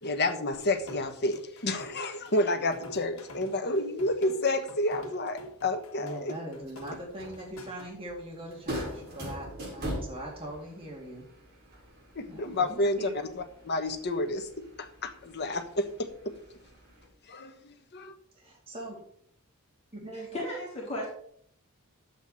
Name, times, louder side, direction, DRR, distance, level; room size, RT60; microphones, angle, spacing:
voice 1, 0.0-6.3 12.1-13.1 13.4-14.5 14.8-16.3 17.3-18.1, left 2 dB, 50° left, 7 dB, 1.4 m, -30 dB
sound 1, 0.5-7.9, left 1 dB, 65° left, 2.1 m, -48 dB
voice 2, 6.0-11.2 12.3-12.4 12.7-13.2 18.3-19.0 19.9-20.3, right 1 dB, 25° right, -2 dB, 2.4 m, -41 dB
sound 2, 6.5-17.1, equal, 45° right, 5.2 m, -43 dB
voice 3, 20.1-21.1, left 1 dB, 30° left, -5 dB, 3.4 m, -35 dB
11.5 x 8.2 x 4.2 m, 0.65 s
head